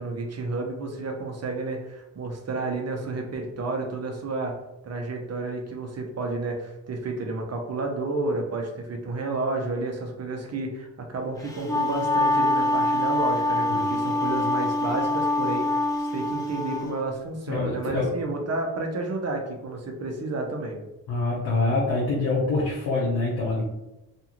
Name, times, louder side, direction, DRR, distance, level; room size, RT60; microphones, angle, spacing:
voice 1, 0.0-4.6 4.8-20.8, right 3 dB, 45° right, 2 dB, 0.7 m, -31 dB
Wind instrument woodwind instrument, 11.4-16.9, left 2 dB, 10° left, 0.6 m, -25 dB
voice 2, 17.5-18.1 21.1-23.6, left 3 dB, 80° left, -5 dB, 0.8 m, -25 dB
2.6 x 2.3 x 2.9 m, 0.97 s
cardioid pair, 65°, 37 cm